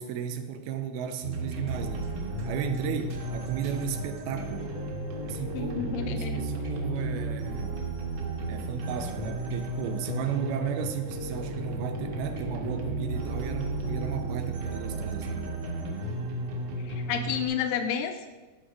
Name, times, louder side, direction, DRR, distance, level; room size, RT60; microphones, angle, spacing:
voice 1, 0.0-2.0 2.4-4.7 5.3-7.8 8.5-15.5, right 8 dB, 80° right, 2.6 m, -34 dB
sound 1, 1.2-17.4, right 2 dB, 55° right, 2.2 m, -33 dB
voice 2, 5.5-6.4 16.9-18.3, left 8 dB, 80° left, 2.2 m, -30 dB
12.0 x 6.4 x 5.0 m
omnidirectional pair, 4.5 m